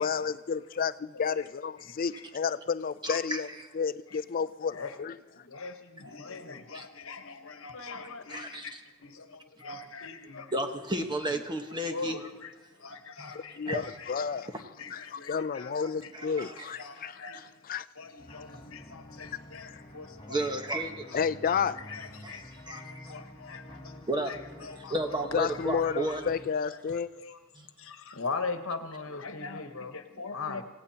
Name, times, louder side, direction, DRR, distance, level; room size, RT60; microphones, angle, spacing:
voice 1, 0.0-3.5 3.7-5.2 13.3-14.5 14.9-17.9 19.7-19.8 21.1-21.8 25.3-27.1, left 6 dB, 40° left, 0.4 m, -31 dB
voice 2, 1.8-2.3 4.1-4.2 4.7-4.9 5.4-8.7 9.0-10.5 10.9-11.0 11.9-12.5 12.8-14.5 14.8-17.5 18.0-20.5 21.1-24.0 24.3-25.0 25.4-26.8 27.2-27.4 27.8-30.6, left 4 dB, 70° left, 1.2 m, -41 dB
voice 3, 3.0-3.4 6.7-6.9 8.3-8.8 10.5-12.2 13.2-13.8 16.1-17.0 20.3-21.1 22.2-23.1 24.1-26.2 27.5-27.7, right 1 dB, 20° right, 1.2 m, -33 dB
sound 1, 18.2-26.5, left 1 dB, 25° left, 2.3 m, -49 dB
27.0 x 17.0 x 2.9 m
head